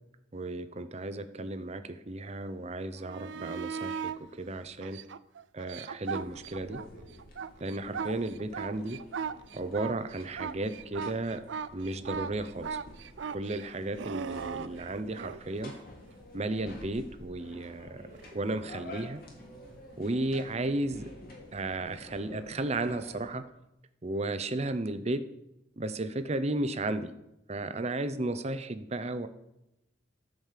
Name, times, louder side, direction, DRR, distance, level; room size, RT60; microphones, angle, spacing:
voice 1, 0.3-5.0 5.5-6.8 7.6-9.0 9.5-11.5 11.7-12.8 13.3-15.7 16.3-19.2 20.0-21.1 21.5-23.5 24.0-25.2 25.8-27.1 27.5-29.3, right 2 dB, 35° right, 10 dB, 0.7 m, -34 dB
sound 1, 3.0-4.2 4.8-6.9 7.2-15.4 18.2-18.3, right 6 dB, 70° right, 0.5 m, -38 dB
sound 2, 6.1-23.3, left 1 dB, 50° left, 2.6 m, -50 dB
12.5 x 5.2 x 7.5 m, 0.88 s
head